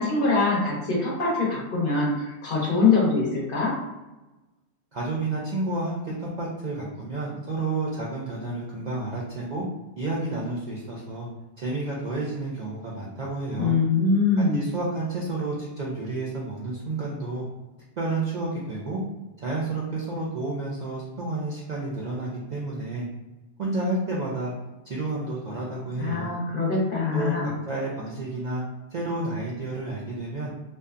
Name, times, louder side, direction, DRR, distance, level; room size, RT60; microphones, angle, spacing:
voice 1, 0.0-3.7 13.6-14.7 26.0-27.5, left 4 dB, 50° left, -5 dB, 0.9 m, -23 dB
voice 2, 4.9-9.6 10.0-11.3 11.6-13.7 14.5-17.4 18.0-19.0 19.4-23.0 23.6-24.5 24.8-26.3 27.1-27.4 27.7-28.6 28.9-30.5, right 2 dB, 60° right, -4 dB, 0.4 m, -30 dB
2.6 x 2.2 x 2.4 m, 1.1 s
omnidirectional pair, 1.2 m